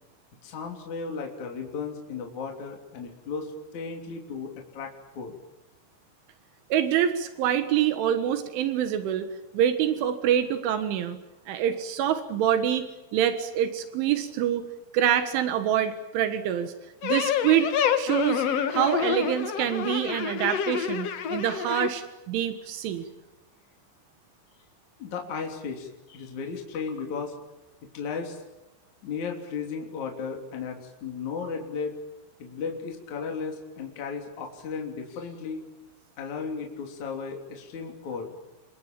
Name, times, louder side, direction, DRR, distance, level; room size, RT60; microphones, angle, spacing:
voice 1, 0.4-5.4 25.0-27.3 27.9-28.4 29.0-32.0 32.4-35.6 36.2-38.4, left 5 dB, 40° left, 2 dB, 4.1 m, -35 dB
voice 2, 6.7-9.3 9.5-11.2 11.5-12.9 13.1-14.7 14.9-16.7 17.0-18.5 18.7-23.0, right 10 dB, 85° right, 9 dB, 4.0 m, -26 dB
sound 1, 17.0-21.9, left 8 dB, 80° left, 1.4 m, -28 dB
30.0 x 25.0 x 7.4 m, 1.0 s
omnidirectional pair, 5.4 m